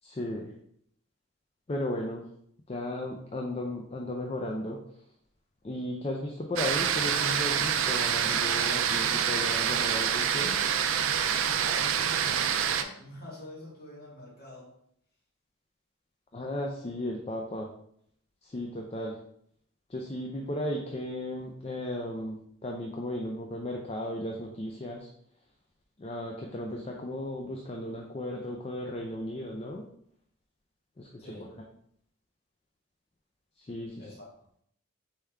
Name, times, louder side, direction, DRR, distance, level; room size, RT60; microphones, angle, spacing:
voice 1, 0.0-0.5 1.7-2.3 2.7-4.8 5.6-10.6 16.3-17.7 18.4-19.2 19.9-25.1 26.0-29.9 31.0-31.1 33.6-34.0, left 1 dB, 30° left, 0 dB, 0.4 m, -35 dB
sound 1, 6.6-12.8, right 8 dB, 70° right, 0.4 m, -27 dB
voice 2, 11.5-14.8 31.2-31.6 34.0-34.3, left 1 dB, 50° left, -5 dB, 1.7 m, -46 dB
4.3 x 3.6 x 3.4 m, 0.68 s
head